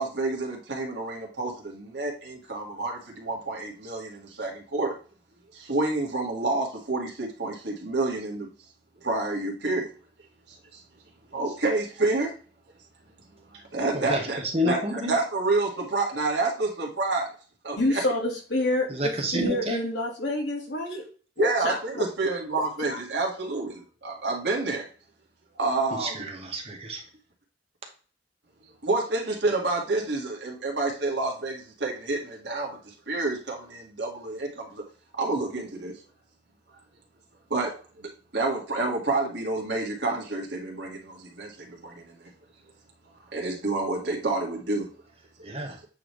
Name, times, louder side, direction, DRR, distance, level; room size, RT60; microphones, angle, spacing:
voice 1, 0.0-4.9 5.5-8.5 9.0-9.9 10.5-10.8 11.3-12.3 13.5-17.3 17.6-18.0 21.4-24.9 25.6-26.2 28.8-34.8 35.2-35.9 37.5-42.3 43.3-44.9, right 3 dB, 65° right, 1.9 m, -29 dB
voice 2, 14.5-15.1 18.9-19.8 26.0-27.0 45.4-45.8, equal, 35° right, 1.3 m, -29 dB
voice 3, 17.8-21.0 21.4-22.0 22.5-23.0, left 1 dB, 70° left, 1.9 m, -28 dB
8.4 x 3.5 x 3.2 m
head